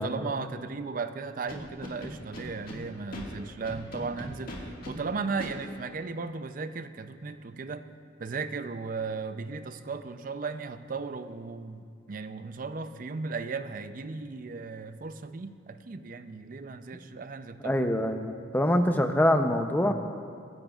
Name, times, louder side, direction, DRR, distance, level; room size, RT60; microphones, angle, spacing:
voice 1, 0.0-7.9 8.2-17.8, right 4 dB, 45° right, 10 dB, 0.5 m, -36 dB
Scratching (performance technique), 1.5-2.8 3.1-3.2 3.6-4.9 5.4-5.5, left 1 dB, 45° left, 1.8 m, -39 dB
voice 2, 17.6-19.9, left 1 dB, 10° left, 6 dB, 0.6 m, -24 dB
24.5 x 10.5 x 2.4 m, 2.2 s
head